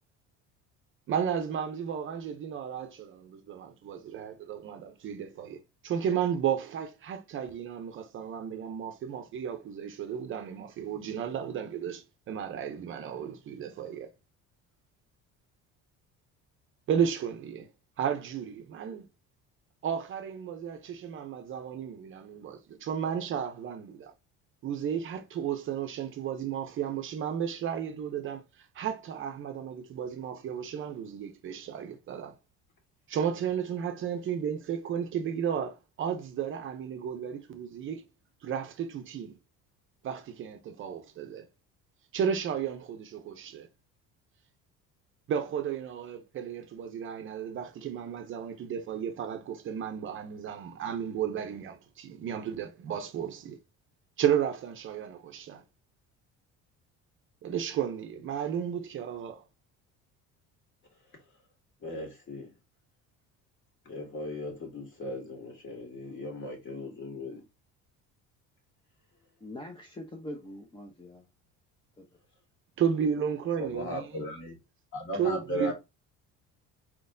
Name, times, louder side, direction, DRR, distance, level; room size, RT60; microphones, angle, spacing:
voice 1, 1.1-14.1 16.9-17.7 18.0-19.1 19.8-24.1 24.6-32.4 33.1-38.0 38.4-39.4 40.0-41.5 42.1-43.7 45.3-53.6 54.2-55.6 57.4-59.4 72.8-74.2 75.1-75.7, right 8 dB, 40° right, 0.7 m, -33 dB
voice 2, 61.8-62.5 63.9-67.4 73.6-74.5 74.9-75.7, equal, 40° left, 2.0 m, -37 dB
voice 3, 69.4-71.2 72.0-72.1, left 1 dB, 15° left, 0.7 m, -43 dB
4.5 x 4.0 x 2.6 m
cardioid pair, 155°, 31 cm